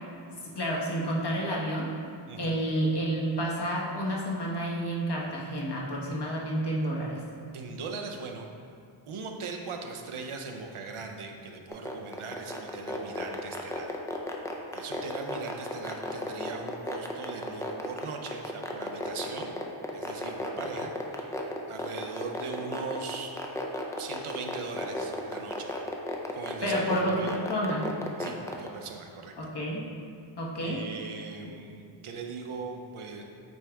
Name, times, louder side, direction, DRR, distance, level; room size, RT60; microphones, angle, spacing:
voice 1, 0.3-1.9 2.4-7.2 26.6-27.9 29.4-29.8 30.4-30.8, right 1 dB, 55° left, -4 dB, 1.2 m, -30 dB
voice 2, 7.5-8.5 9.1-13.9 14.7-19.6 19.9-23.3 24.0-25.7 26.3-27.4 28.2-29.3 30.6-33.2, right 4 dB, 85° right, 3 dB, 0.7 m, -40 dB
sound 1, 11.7-28.7, left 1 dB, 5° left, 0.4 m, -33 dB
8.8 x 3.5 x 3.5 m, 2.3 s
wide cardioid pair, 105°, 48 cm